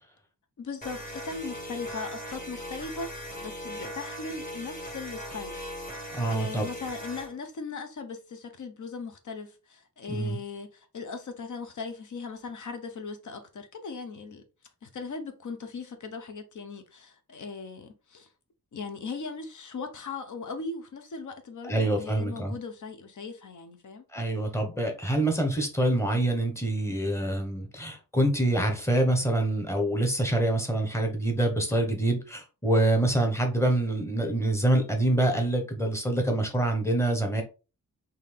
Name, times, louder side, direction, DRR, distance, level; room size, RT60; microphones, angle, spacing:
voice 1, 0.6-5.7 6.3-14.4 14.8-18.3 18.7-24.0, left 4 dB, 60° left, 0.8 m, -38 dB
sound 1, 0.8-7.3, equal, 25° left, 1.3 m, -39 dB
voice 2, 6.1-6.7 10.1-10.4 21.7-22.5 24.1-37.4, right 1 dB, 10° left, 1.0 m, -26 dB
3.9 x 2.8 x 3.4 m
wide cardioid pair, 125°, 34 cm